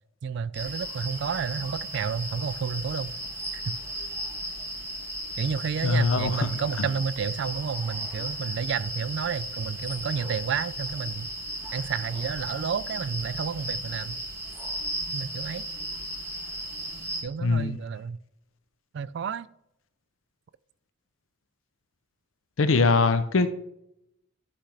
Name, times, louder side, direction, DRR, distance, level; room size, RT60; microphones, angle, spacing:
voice 1, 0.2-3.1 3.5-3.8 5.4-11.3 11.7-14.2 15.1-15.6 17.2-18.2 18.9-19.5, right 6 dB, 60° right, 0.3 m, -31 dB
sound 1, 0.5-17.2, right 1 dB, 15° right, 2.1 m, -35 dB
voice 2, 5.8-6.5 6.8-6.9 17.4-17.8 22.6-23.5, left 3 dB, 80° left, 0.6 m, -22 dB
11.5 x 5.8 x 3.3 m
head